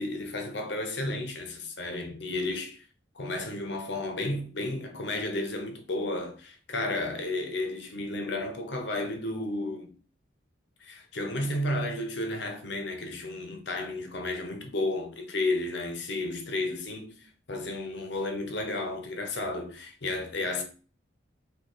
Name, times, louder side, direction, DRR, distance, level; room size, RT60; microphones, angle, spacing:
voice 1, 0.0-2.9 3.1-9.9 10.8-20.6, left 2 dB, 60° left, 0.9 m, -32 dB
5.1 x 2.6 x 4.0 m
head